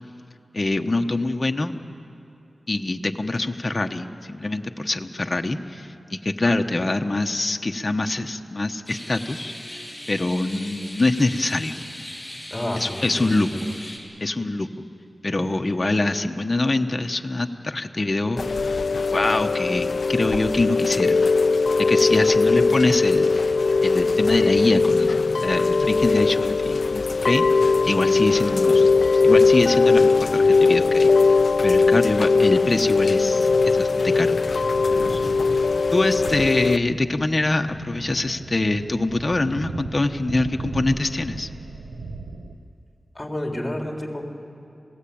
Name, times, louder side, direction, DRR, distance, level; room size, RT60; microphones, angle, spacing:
voice 1, 0.5-1.8 2.7-9.5 10.1-11.8 12.8-13.5 14.2-14.7 15.2-18.8 19.1-21.3 21.9-23.5 23.8-25.2 25.4-27.5 27.8-28.9 29.2-31.1 31.6-34.4 35.9-41.5, left 2 dB, 40° left, 5 dB, 1.2 m, -24 dB
sound 1, 8.9-14.0, left 1 dB, ahead, 7.0 m, -38 dB
voice 2, 12.5-13.8 34.9-35.4 43.1-44.2, left 1 dB, 20° left, 1 dB, 3.8 m, -31 dB
Chime / Rain, 18.4-36.8, left 4 dB, 70° left, 0.5 m, -19 dB
sound 2, 34.4-42.5, right 3 dB, 85° right, 1.2 m, -37 dB
27.5 x 18.0 x 8.8 m, 2.7 s
cardioid pair, 45°, 0 cm